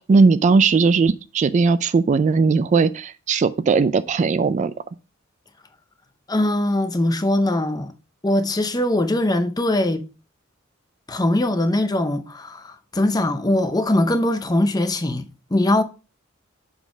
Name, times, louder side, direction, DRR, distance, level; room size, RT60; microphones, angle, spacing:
voice 1, 0.0-4.7, right 4 dB, 35° right, 0.3 m, -18 dB
voice 2, 6.3-7.9 8.2-10.0 11.1-15.3 15.5-15.8, left 1 dB, 20° left, 0.6 m, -21 dB
7.1 x 4.0 x 4.9 m
head